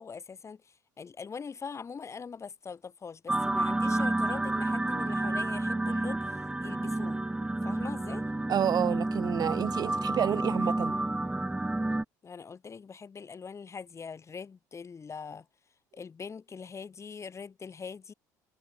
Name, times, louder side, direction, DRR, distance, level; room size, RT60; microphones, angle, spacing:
voice 1, 0.0-7.2 7.6-8.3 12.2-15.5 15.9-18.1, left 5 dB, 30° left, 2.4 m, -42 dB
sound 1, 3.3-12.0, right 2 dB, 10° right, 1.8 m, -30 dB
voice 2, 8.5-11.0, right 9 dB, 45° right, 1.1 m, -29 dB
hypercardioid pair, 75°, 9 cm